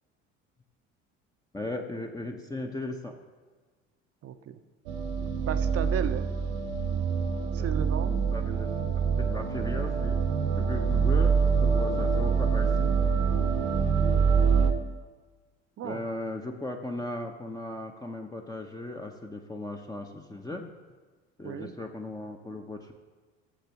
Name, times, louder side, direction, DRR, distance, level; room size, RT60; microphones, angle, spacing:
voice 1, 1.5-3.2 7.6-7.7 8.3-10.2 10.6-12.9 15.8-20.7 21.4-22.9, left 2 dB, 10° left, 2 dB, 0.9 m, -37 dB
voice 2, 4.2-4.6 5.5-6.3 7.5-8.2 14.1-14.6 15.8-16.0 21.4-21.7, right 9 dB, 40° right, 10 dB, 0.8 m, -35 dB
sound 1, 4.9-14.7, right 6 dB, 60° right, 1.1 m, -25 dB
17.5 x 7.6 x 3.0 m, 1.4 s
figure-of-eight pair, 60°, 37 cm